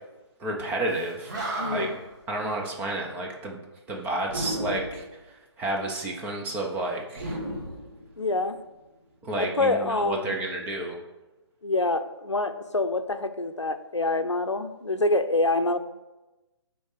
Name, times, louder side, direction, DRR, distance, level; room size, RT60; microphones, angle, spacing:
voice 1, 0.4-1.4 1.7-1.9 2.3-3.6 3.9-5.0 5.6-7.4 9.2-10.9, right 2 dB, 10° right, 0 dB, 0.8 m, -30 dB
Animal, 0.9-2.1 4.3-5.1 7.1-8.5, right 1 dB, 40° right, 2.1 m, -34 dB
voice 2, 1.6-2.0 8.2-8.6 9.6-10.4 11.6-15.8, left 2 dB, 85° left, 9 dB, 0.7 m, -26 dB
9.6 x 3.9 x 4.8 m, 1.1 s
figure-of-eight pair, 140°, 15 cm